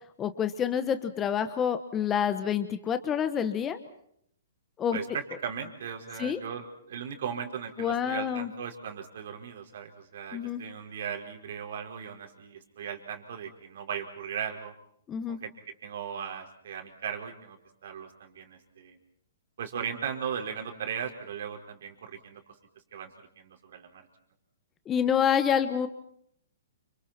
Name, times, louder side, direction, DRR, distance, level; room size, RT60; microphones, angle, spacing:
voice 1, 0.2-3.8 4.8-5.0 6.2-6.4 7.8-8.5 10.3-10.6 15.1-15.4 24.9-25.9, left 8 dB, 15° left, 10 dB, 1.3 m, -27 dB
voice 2, 4.9-14.7 15.3-15.5 15.8-19.0 19.6-22.4 22.9-24.1, right 7 dB, 60° right, 3 dB, 4.9 m, -37 dB
29.5 x 28.0 x 4.4 m, 0.69 s
hypercardioid pair, 160°, 0 cm